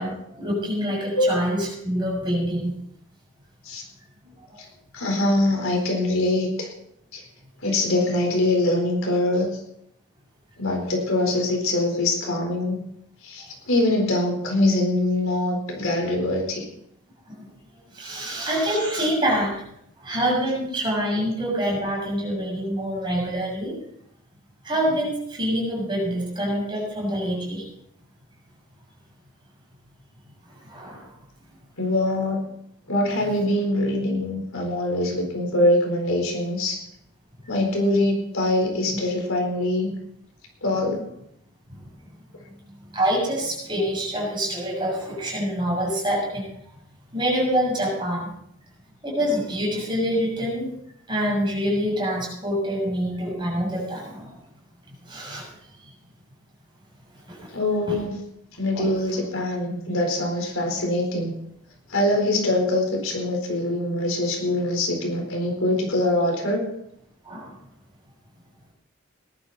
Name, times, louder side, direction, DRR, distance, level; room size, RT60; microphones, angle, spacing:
voice 1, 0.0-2.7 4.2-4.6 17.3-17.5 17.9-19.6 20.0-23.8 24.6-27.6 30.5-31.1 38.9-39.0 41.7-41.8 42.5-46.5 47.1-48.3 49.0-50.7 51.1-54.3 55.0-55.5 57.3-57.5 57.9-58.0 58.8-58.9 67.3-67.6, equal, 20° right, -3 dB, 6.9 m, -26 dB
voice 2, 4.9-6.7 7.1-7.2 7.6-9.5 10.6-12.8 13.2-16.6 18.2-18.3 21.2-21.3 31.8-32.4 32.9-36.8 37.5-39.9 40.6-41.0 57.5-58.2 58.6-61.3 61.9-66.6, left 1 dB, 70° left, 1 dB, 4.3 m, -23 dB
19.0 x 11.5 x 4.2 m, 0.76 s
head